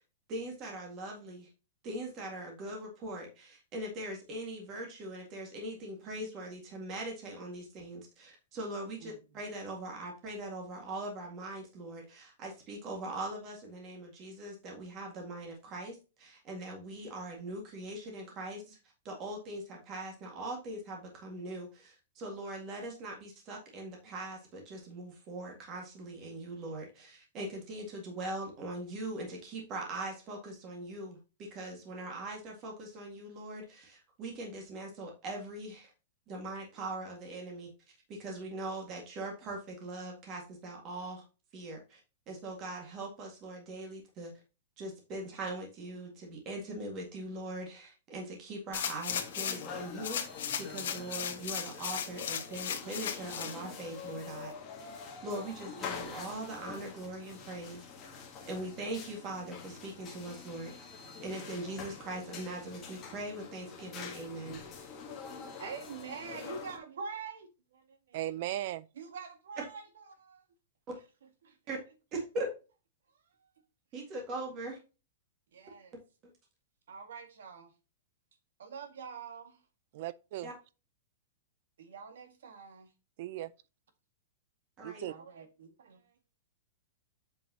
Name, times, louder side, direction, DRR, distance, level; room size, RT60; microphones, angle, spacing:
voice 1, 0.3-1.5 1.8-18.8 19.0-35.9 36.3-37.7 38.1-41.2 41.5-42.0 42.3-44.3 44.8-54.5 55.2-57.8 58.5-60.9 61.2-64.6 70.9-71.0 71.7-71.8 72.1-72.5 73.9-74.8 80.4-80.5 84.8-85.1, right 1 dB, 20° right, 1.9 m, -41 dB
sound 1, 48.7-49.7 50.0-53.6 54.1-54.2, left 8 dB, 65° left, 1.4 m, -36 dB
sound 2, 49.1-66.8, left 6 dB, 15° left, 1.4 m, -46 dB
voice 2, 65.6-68.2 69.0-69.8 70.1-70.4 71.4-71.6 73.4-73.5 75.5-76.0 76.9-77.7 78.6-79.6 81.8-82.9 85.1-86.1, right 5 dB, 75° right, 1.9 m, -45 dB
voice 3, 68.1-68.9 79.9-80.5 83.2-83.5 84.8-85.1, right 14 dB, 40° right, 0.3 m, -37 dB
7.6 x 5.4 x 2.9 m
supercardioid pair, 180°, 0 cm